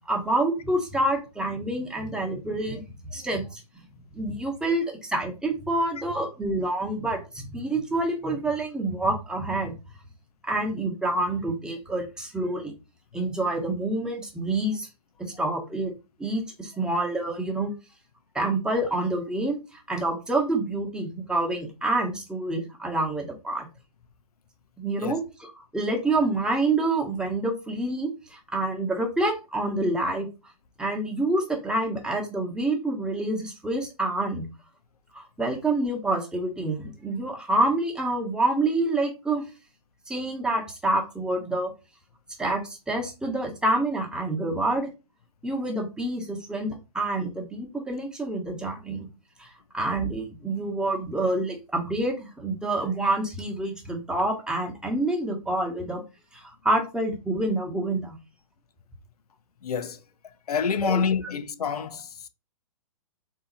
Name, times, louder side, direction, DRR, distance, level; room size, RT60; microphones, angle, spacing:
voice 1, 0.1-2.9 3.1-3.6 4.2-9.7 10.4-12.7 13.1-14.9 15.2-15.9 16.2-17.7 18.3-23.7 24.8-30.3 30.8-34.5 35.1-39.5 40.1-41.7 42.4-44.9 45.4-49.1 49.4-56.0 56.3-58.2 60.8-61.0, right 2 dB, 5° right, 1.1 m, -27 dB
voice 2, 59.6-60.0 60.5-62.3, left 6 dB, 80° left, 0.6 m, -27 dB
3.8 x 2.8 x 4.0 m
hypercardioid pair, 130°, 19 cm